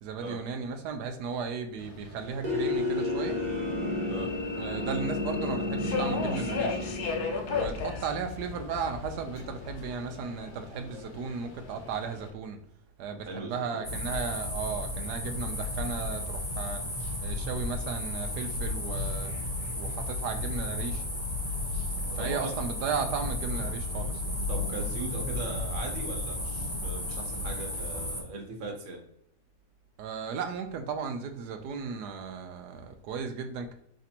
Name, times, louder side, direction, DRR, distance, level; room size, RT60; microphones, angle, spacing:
voice 1, 0.0-3.4 4.6-7.0 7.5-12.6 13.0-16.8 17.2-19.3 19.8-21.0 22.1-24.4 30.0-33.7, right 5 dB, 75° right, 7 dB, 1.2 m, -35 dB
Subway metro underground, 1.8-12.3, left 5 dB, 70° left, 1.2 m, -37 dB
sound 1, 2.4-9.0, left 2 dB, 40° right, 0.7 m, -32 dB
voice 2, 13.3-13.8 22.2-22.5 24.5-29.0, right 2 dB, 55° right, 0 dB, 1.4 m, -39 dB
sound 2, 13.8-28.2, left 2 dB, 20° left, 0.9 m, -33 dB
5.0 x 3.3 x 2.8 m, 0.74 s
omnidirectional pair, 1.8 m